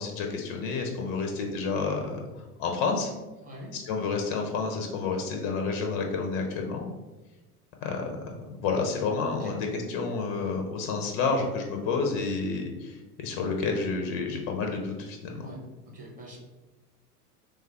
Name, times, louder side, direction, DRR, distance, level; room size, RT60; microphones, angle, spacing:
voice 1, 0.0-3.1 3.7-6.9 7.8-8.2 8.5-15.5, left 4 dB, 30° left, 3 dB, 0.4 m, -30 dB
voice 2, 3.4-3.7 9.4-9.5 10.4-10.5 15.3-16.4, right 1 dB, 15° right, -3 dB, 0.8 m, -44 dB
3.2 x 2.2 x 3.3 m, 1.1 s
figure-of-eight pair, 75°, 46 cm